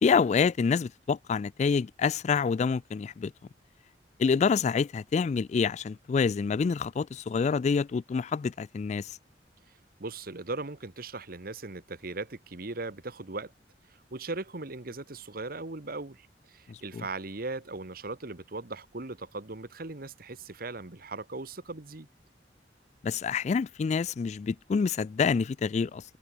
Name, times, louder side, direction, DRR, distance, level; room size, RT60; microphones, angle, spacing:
voice 1, 0.0-3.3 4.2-9.2 16.7-17.0 23.0-26.0, left 5 dB, 40° left, 0.3 m, -27 dB
voice 2, 10.0-13.5 13.9-22.1, right 3 dB, 55° right, 1.5 m, -38 dB
head